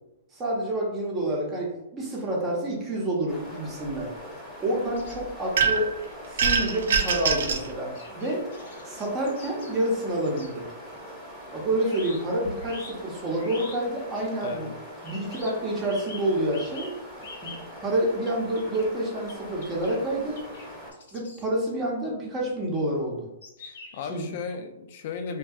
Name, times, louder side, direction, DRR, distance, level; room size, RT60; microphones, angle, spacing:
voice 1, 0.3-4.1 4.6-5.9 6.3-8.4 8.8-10.7 11.5-14.7 15.0-16.9 17.4-20.4 21.1-23.3 24.1-24.3, right 1 dB, 20° right, -2 dB, 0.7 m, -28 dB
sound 1, 3.3-20.9, equal, 5° left, 0.9 m, -42 dB
sound 2, 5.0-5.2 6.4-7.3 7.9-10.5 11.8-13.0 13.4-13.8 14.2-14.3 15.0-15.6 15.9-17.7 18.3-18.9 19.3-19.4 19.6-20.0 20.4-20.7 20.9-21.4 23.4-24.2, left 3 dB, 70° left, 0.7 m, -44 dB
sound 3, 5.6-6.0 6.4-7.7, right 5 dB, 70° right, 0.4 m, -23 dB
voice 2, 14.4-14.7 23.6-25.4, left 5 dB, 55° left, 7 dB, 0.3 m, -36 dB
2.6 x 2.2 x 2.3 m, 0.91 s
hypercardioid pair, 130°, 0 cm